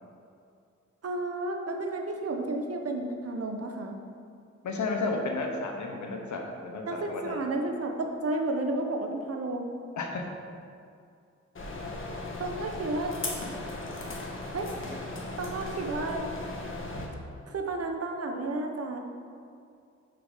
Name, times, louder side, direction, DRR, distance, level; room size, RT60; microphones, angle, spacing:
voice 1, 1.0-4.0 6.9-9.7 12.4-13.1 14.5-14.7 15.4-16.2 17.5-19.0, right 2 dB, 55° right, 3 dB, 0.9 m, -32 dB
voice 2, 4.6-7.4 10.0-10.2, left 3 dB, 80° left, 2 dB, 1.0 m, -32 dB
sound 1, 11.5-17.1, left 2 dB, 45° left, 1.3 m, -37 dB
5.9 x 5.0 x 5.0 m, 2.4 s
cardioid pair, 65°, 29 cm